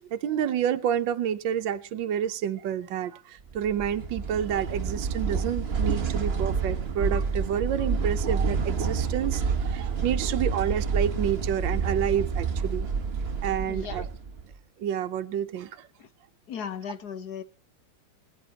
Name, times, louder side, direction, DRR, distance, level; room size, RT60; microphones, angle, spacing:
voice 1, 0.0-12.9 13.4-14.0 14.8-15.9, right 9 dB, 80° right, 1.6 m, -29 dB
sound 1, 3.5-14.5, right 5 dB, 40° right, 1.2 m, -28 dB
voice 2, 13.7-14.1 16.0-16.1 16.5-17.4, left 8 dB, 60° left, 1.4 m, -36 dB
22.5 x 10.5 x 2.9 m
omnidirectional pair, 2.0 m